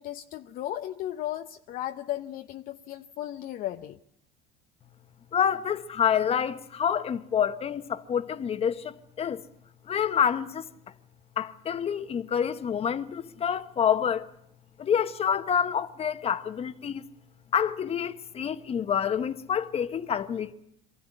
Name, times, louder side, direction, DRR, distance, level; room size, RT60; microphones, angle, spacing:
voice 1, 0.0-4.0, left 13 dB, 55° left, 0.8 m, -35 dB
voice 2, 5.3-9.4 9.9-10.7 11.4-14.3 14.8-17.0 17.5-20.5, left 8 dB, 35° left, 1.2 m, -27 dB
23.5 x 14.5 x 9.9 m
supercardioid pair, 105°, 18 cm